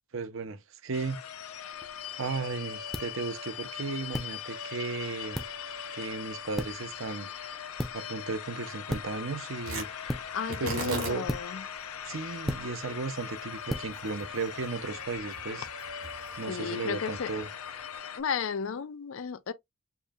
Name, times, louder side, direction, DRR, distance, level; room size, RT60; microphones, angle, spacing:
voice 1, 0.1-1.2 2.2-5.4 5.9-7.3 7.9-9.9 10.6-11.3 12.0-15.7 16.4-17.5, right 4 dB, 60° right, 0.7 m, -35 dB
sound 1, 0.9-18.2, left 7 dB, 90° left, 0.7 m, -40 dB
sound 2, 1.7-15.2, equal, ahead, 0.3 m, -40 dB
Tearing, 9.6-18.0, right 2 dB, 80° right, 3.3 m, -42 dB
voice 2, 10.3-11.6 16.5-17.3 18.1-19.5, left 6 dB, 65° left, 0.4 m, -33 dB
7.0 x 2.6 x 2.4 m
head